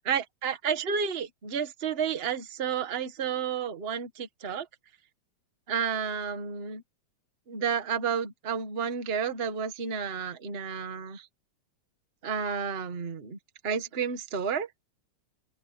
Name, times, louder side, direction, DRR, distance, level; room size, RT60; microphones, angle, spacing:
voice 1, 0.0-4.7 5.7-6.8 7.5-11.3 12.2-13.4 13.6-14.7, right 7 dB, 30° right, 1.1 m, -31 dB
open air
omnidirectional pair, 3.3 m